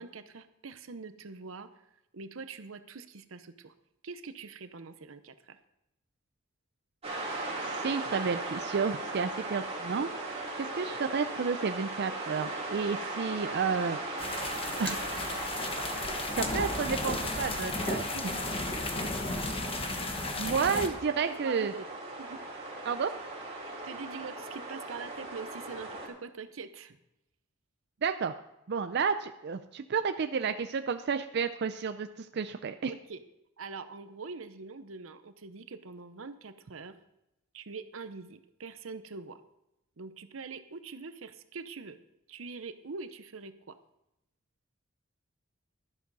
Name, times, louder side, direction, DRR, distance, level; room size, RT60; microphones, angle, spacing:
voice 1, 0.0-1.7 2.1-3.7 4.0-5.6 18.1-18.4 19.0-19.1 20.4-20.8 21.3-21.9 22.2-22.4 23.6-27.0 32.9-33.2 33.6-37.0 37.5-39.4 40.0-42.0 42.3-43.8, right 4 dB, 85° right, 11 dB, 0.8 m, -44 dB
sound 1, 7.0-26.1, right 2 dB, 30° right, 2.9 m, -38 dB
voice 2, 7.8-10.1 10.6-14.0 14.8-15.0 16.4-18.1 20.4-21.7 22.9-23.1 28.0-28.3 28.7-32.9, right 5 dB, 55° right, 9 dB, 0.5 m, -31 dB
sound 2, 14.2-20.9, left 2 dB, 30° left, 1.1 m, -34 dB
12.0 x 11.0 x 4.0 m, 0.88 s
head